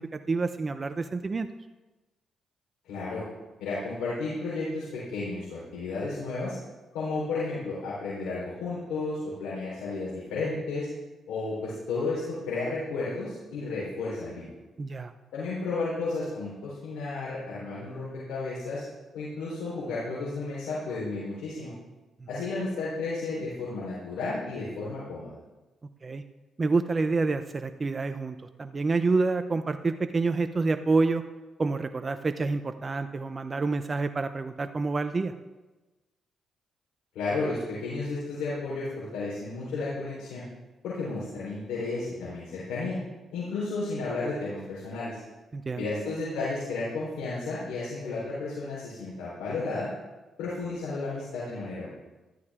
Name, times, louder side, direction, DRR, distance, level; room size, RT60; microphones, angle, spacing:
voice 1, 0.0-1.5 14.8-15.1 26.0-26.2 26.6-31.2 31.6-35.3 45.5-45.9, right 3 dB, 35° right, 9 dB, 0.7 m, -28 dB
voice 2, 2.8-3.2 3.6-6.6 6.9-10.9 11.3-14.5 15.3-18.8 19.1-21.7 22.3-25.3 37.1-40.5 40.8-43.0 43.3-45.2 45.8-49.9 50.4-51.9, left 3 dB, 90° left, -8 dB, 4.2 m, -33 dB
14.5 x 13.0 x 3.7 m, 1.1 s
cardioid pair, 75°, 0 cm